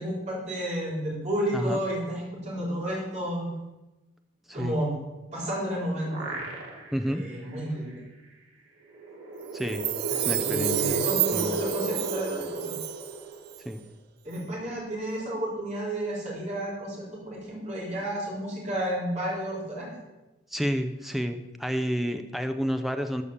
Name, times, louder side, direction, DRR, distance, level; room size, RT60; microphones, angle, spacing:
voice 1, 0.0-3.5 4.5-4.9 5.3-6.4 7.1-8.0 10.1-12.7 14.2-19.9, right 1 dB, 35° right, -4 dB, 3.8 m, -32 dB
sound 1, 5.4-7.1 7.5-7.6 8.9-13.7, right 2 dB, 75° right, 2.9 m, -33 dB
voice 2, 6.9-7.2 9.5-9.8 10.2-11.0 11.3-11.7 13.6-13.8 20.5-23.2, equal, ahead, 7 dB, 0.6 m, -30 dB
Chime, 9.6-13.2 13.5-13.6, right 16 dB, 50° right, 0.4 m, -30 dB
13.5 x 5.1 x 7.1 m, 1.1 s
head